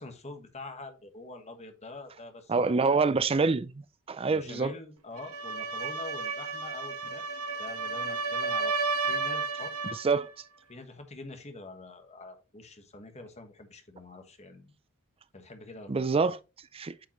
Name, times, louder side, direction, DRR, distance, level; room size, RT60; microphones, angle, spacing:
voice 1, 0.0-3.1 4.2-7.3 7.6-8.7 9.1-9.7 10.7-14.7 15.3-16.1, left 2 dB, 30° left, 1.3 m, -45 dB
voice 2, 2.5-4.7 10.0-10.3 15.9-16.4 16.7-16.9, right 4 dB, 25° right, 0.4 m, -26 dB
sound 1, 5.2-10.1, right 4 dB, 85° right, 1.2 m, -32 dB
8.7 x 5.2 x 3.1 m
head